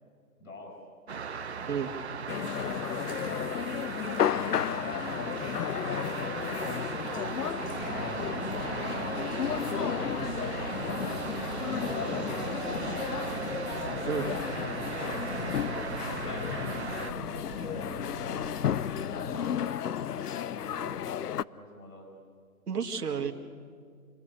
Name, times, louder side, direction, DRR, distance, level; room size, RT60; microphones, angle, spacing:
voice 1, 0.4-0.8 1.5-1.8 2.1-7.0 7.7-13.4 14.1-18.0 18.9-22.1, left 1 dB, 60° left, 1 dB, 7.5 m, -48 dB
sound 1, 1.1-17.1, right 6 dB, 45° right, 1.2 m, -37 dB
sound 2, 2.3-21.4, left 9 dB, 90° left, 0.7 m, -33 dB
sound 3, 7.6-19.4, right 2 dB, ahead, 0.9 m, -42 dB
voice 2, 22.7-23.3, right 7 dB, 85° right, 4 dB, 2.5 m, -31 dB
27.5 x 20.5 x 8.2 m, 2.1 s
hypercardioid pair, 175°, 45 cm